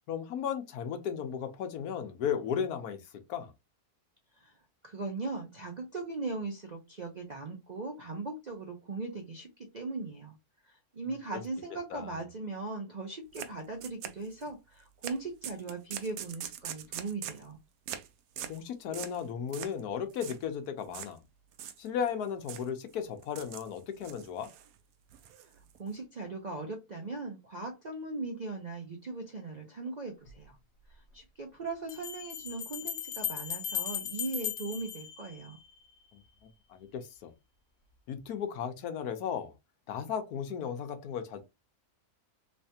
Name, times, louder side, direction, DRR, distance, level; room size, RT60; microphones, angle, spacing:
voice 1, 0.1-3.0 3.3-3.5 11.3-11.4 11.9-12.2 18.5-21.2 21.8-24.5 36.1-36.2 36.7-37.3 38.1-39.5 39.9-41.4, left 8 dB, 75° left, 1.2 m, -35 dB
voice 2, 4.8-9.5 9.7-10.4 10.7-17.6 25.8-30.6 30.9-35.6, right 3 dB, 55° right, 0.4 m, -39 dB
sound 1, 13.3-13.5 13.8-14.5 15.0-15.2 15.4-17.5 17.9-18.1 18.4-18.6 18.9-19.2 19.5-19.8 20.1-20.4 20.9-21.1 21.5-22.1 22.5-22.7 23.2-23.7 24.0-24.7 25.1-25.9, right 10 dB, 70° right, 1.0 m, -42 dB
Bell, 30.3-30.4 31.9-35.8, left 9 dB, 55° left, 0.9 m, -37 dB
3.3 x 3.2 x 2.8 m
omnidirectional pair, 1.6 m